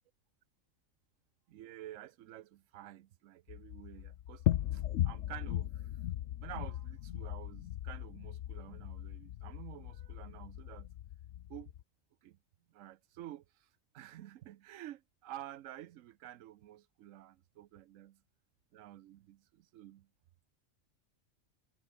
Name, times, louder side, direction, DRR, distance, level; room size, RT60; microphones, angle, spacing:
voice 1, 1.5-4.4 4.7-5.9 6.4-10.9 11.5-11.7 12.2-12.4 12.7-13.7 13.9-18.2 18.7-20.1, right 13 dB, 85° right, 1.0 m, -50 dB
sound 1, 3.5-11.8, left 12 dB, 75° left, 1.0 m, -38 dB
omnidirectional pair, 1.3 m